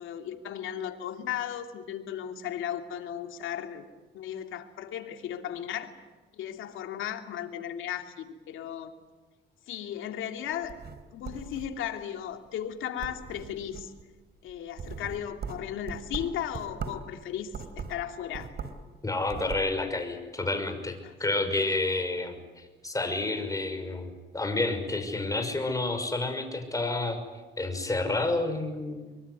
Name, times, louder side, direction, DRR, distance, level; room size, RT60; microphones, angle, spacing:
voice 1, 0.0-3.8 4.1-5.9 6.3-8.9 9.7-10.8 11.1-13.9 14.4-18.5 21.0-21.4, left 10 dB, 85° left, 5 dB, 2.8 m, -36 dB
sound 1, 10.5-12.0 12.5-12.7 13.0-14.0 14.5-17.1 17.5-18.9 19.2-19.7, right 5 dB, 55° right, 3.7 m, -40 dB
voice 2, 19.0-27.2 27.6-29.1, left 2 dB, 15° left, 6 dB, 5.8 m, -30 dB
24.0 x 23.5 x 9.6 m, 1.3 s
cardioid pair, 90°, 20 cm